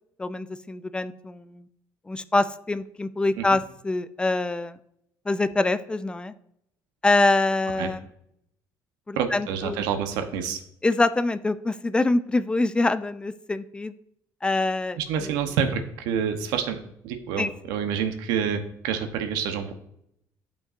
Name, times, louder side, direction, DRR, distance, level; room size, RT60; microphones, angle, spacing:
voice 1, 0.2-1.7 2.1-4.8 5.3-6.3 7.0-8.1 9.1-9.8 10.8-13.9 14.4-15.3 17.4-17.5, left 2 dB, 15° left, 13 dB, 0.3 m, -25 dB
voice 2, 9.1-10.6 15.0-19.7, right 7 dB, 90° right, 7 dB, 0.9 m, -28 dB
11.5 x 5.3 x 2.6 m, 0.76 s
cardioid pair, 120°, 7 cm